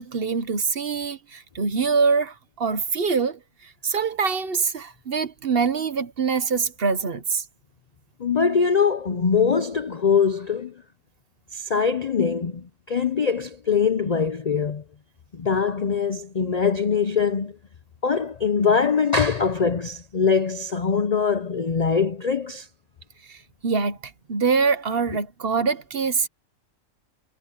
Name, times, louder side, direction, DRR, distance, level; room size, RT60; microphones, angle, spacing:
voice 1, 0.0-7.4 23.3-26.3, right 5 dB, 45° right, 1.1 m, -24 dB
voice 2, 8.2-10.7 11.5-14.8 15.3-17.6 18.0-22.7, left 6 dB, 45° left, 0.5 m, -22 dB
omnidirectional pair, 1.4 m